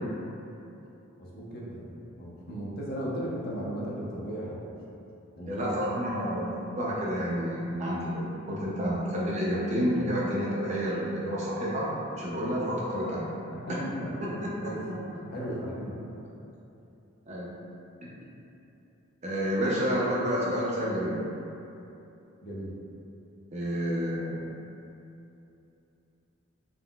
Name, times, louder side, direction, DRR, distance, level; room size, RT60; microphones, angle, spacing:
voice 1, 1.2-4.7 5.4-5.8 6.2-6.4 13.0-14.9 15.3-16.1 22.4-22.8, equal, 45° left, -5 dB, 0.5 m, -36 dB
voice 2, 5.5-11.9 12.2-13.3 14.2-14.3 17.3-17.5 19.2-21.2 23.5-24.4, equal, 35° right, -5 dB, 0.4 m, -29 dB
3.6 x 2.1 x 2.2 m, 2.8 s
head